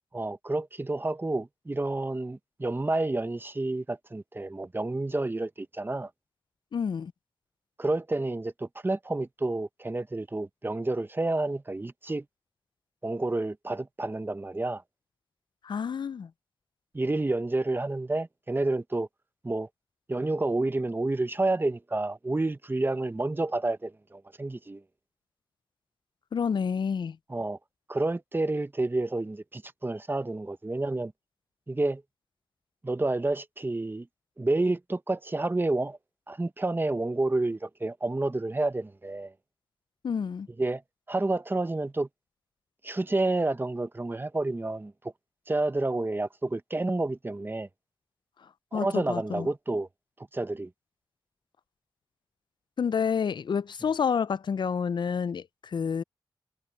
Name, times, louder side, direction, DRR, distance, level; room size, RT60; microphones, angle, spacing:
voice 1, 0.1-6.1 7.8-12.2 13.0-14.8 16.9-19.1 19.4-19.7 20.1-24.8 27.3-27.6 27.9-31.1 31.7-32.0 32.8-34.1 34.4-36.0 36.3-39.3 40.6-40.8 41.1-42.1 42.8-44.9 45.5-47.7 48.7-49.9 50.3-50.7, right 2 dB, 25° right, 1.0 m, -29 dB
voice 2, 6.7-7.1 15.6-16.3 26.3-27.2 40.0-40.5 48.7-49.5 52.8-56.0, left 6 dB, 65° left, 0.4 m, -29 dB
cardioid pair, 50°, 9 cm